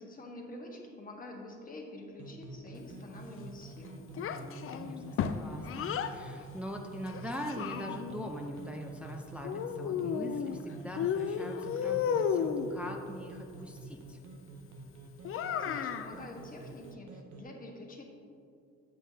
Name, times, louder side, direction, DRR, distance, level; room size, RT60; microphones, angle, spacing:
voice 1, 0.0-4.1 15.6-18.0, left 1 dB, 30° left, 0 dB, 1.3 m, -47 dB
sound 1, 2.1-17.4, right 2 dB, 80° right, 0.9 m, -48 dB
Child speech kid speaking, 4.2-6.2 7.1-8.3 9.4-10.6 11.0-12.7 15.2-16.1, left 7 dB, 50° left, 0.4 m, -33 dB
voice 2, 4.2-14.2, equal, 5° right, 2 dB, 0.5 m, -42 dB
7.9 x 7.4 x 2.7 m, 2.4 s
cardioid pair, 90°, 30 cm